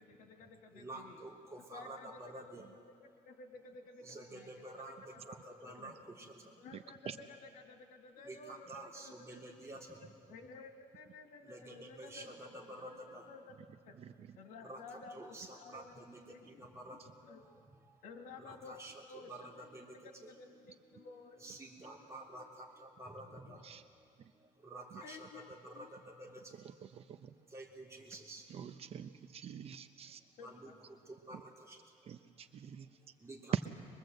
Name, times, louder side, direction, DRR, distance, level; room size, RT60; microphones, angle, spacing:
voice 1, 0.0-1.2 1.7-2.5 3.3-4.5 5.1-5.2 5.7-5.9 6.6-7.1 7.5-8.7 9.0-9.4 10.3-12.3 13.3-13.4 13.8-14.0 14.4-16.0 16.3-16.5 16.9-17.0 17.2-17.4 18.0-18.8 19.1-19.3 20.3-21.4 25.0-25.5 25.7-25.9 30.4-30.7, left 4 dB, 85° left, 4 dB, 2.4 m, -53 dB
voice 2, 0.7-3.2 4.0-6.7 8.1-10.2 11.4-13.3 14.6-18.0 18.4-21.1 21.4-26.6 27.5-28.5 30.4-32.1 33.0-33.7, right 1 dB, 20° right, -2 dB, 3.3 m, -51 dB
voice 3, 6.7-7.2 13.6-13.7 13.9-14.4 17.0-17.1 23.6-23.8 24.2-24.3 24.9-25.0 26.5-27.3 28.1-28.2 28.5-30.2 31.3-31.4 32.1-33.0 33.5-33.6, right 9 dB, 45° right, 10 dB, 0.7 m, -44 dB
23.5 x 22.5 x 7.9 m, 2.2 s
cardioid pair, 155°, 14 cm